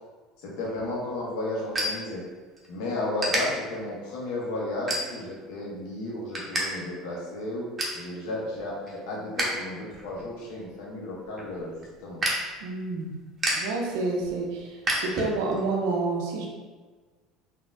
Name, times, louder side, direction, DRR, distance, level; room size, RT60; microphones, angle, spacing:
voice 1, 0.4-2.2 2.7-7.7 7.9-12.2, left 1 dB, 70° left, -4 dB, 1.0 m, -33 dB
sound 1, 0.6-2.7 3.2-3.4 4.0-4.2 4.9-5.4 5.8-6.6 6.9-7.0 7.4-8.0 8.5-9.6 9.9-15.6, right 1 dB, 25° right, 1.0 m, -31 dB
voice 2, 12.6-13.2 13.6-16.5, right 3 dB, 75° right, 0 dB, 0.6 m, -29 dB
3.9 x 2.7 x 2.3 m, 1.4 s
hypercardioid pair, 75°, 0 cm